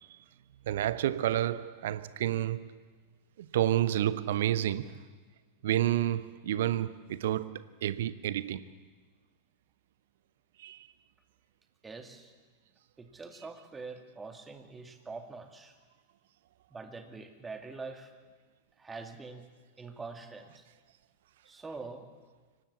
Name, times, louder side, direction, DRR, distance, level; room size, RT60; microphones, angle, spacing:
voice 1, 0.7-2.8 3.4-4.9 5.6-8.6 10.6-10.9, right 12 dB, 55° right, 0.9 m, -30 dB
voice 2, 11.8-12.3 13.0-15.7 16.7-18.1 18.8-19.5 19.8-20.6 21.5-22.1, right 4 dB, 15° right, 2.3 m, -44 dB
24.0 x 18.5 x 8.5 m
figure-of-eight pair, 90°, 0 cm